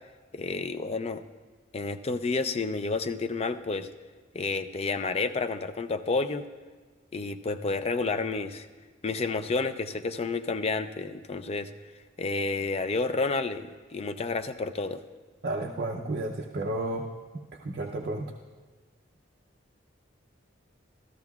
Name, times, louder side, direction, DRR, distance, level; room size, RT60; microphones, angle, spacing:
voice 1, 0.3-1.2 1.7-3.9 4.3-6.4 7.1-8.7 9.0-11.7 12.2-15.0, left 3 dB, 30° left, 9 dB, 0.4 m, -30 dB
voice 2, 15.4-17.1 17.6-18.3, right 2 dB, 50° right, 1 dB, 0.6 m, -32 dB
14.0 x 13.5 x 2.3 m, 1.4 s
head